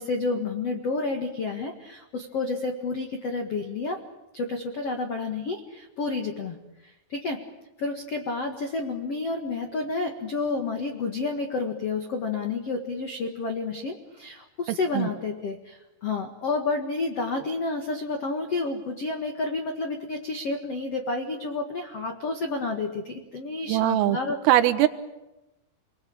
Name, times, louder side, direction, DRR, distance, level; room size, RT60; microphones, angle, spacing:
voice 1, 0.0-4.0 4.3-6.5 6.8-7.4 7.8-24.4, left 3 dB, 70° left, 5 dB, 1.4 m, -30 dB
voice 2, 23.7-24.2 24.5-24.9, right 14 dB, 85° right, 11 dB, 3.9 m, -20 dB
29.0 x 21.5 x 8.8 m, 0.98 s
omnidirectional pair, 5.8 m